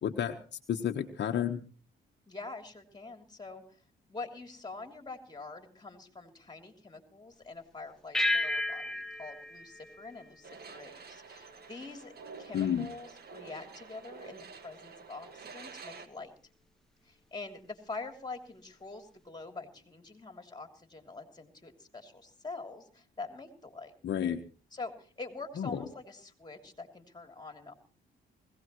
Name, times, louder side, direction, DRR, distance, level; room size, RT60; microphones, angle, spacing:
voice 1, 0.0-0.3 0.7-1.6 12.5-12.9 24.0-24.4 25.6-25.8, left 9 dB, 60° left, 4 dB, 1.3 m, -30 dB
voice 2, 2.3-3.6 4.1-12.1 12.4-16.3 17.0-23.9 24.7-27.7, left 3 dB, 20° left, 5 dB, 3.1 m, -45 dB
sound 1, 8.1-10.9, left 1 dB, ahead, 1.1 m, -33 dB
sound 2, 10.4-16.1, right 5 dB, 50° right, 1.7 m, -49 dB
21.0 x 17.0 x 3.1 m, 0.40 s
cardioid pair, 90°, 20 cm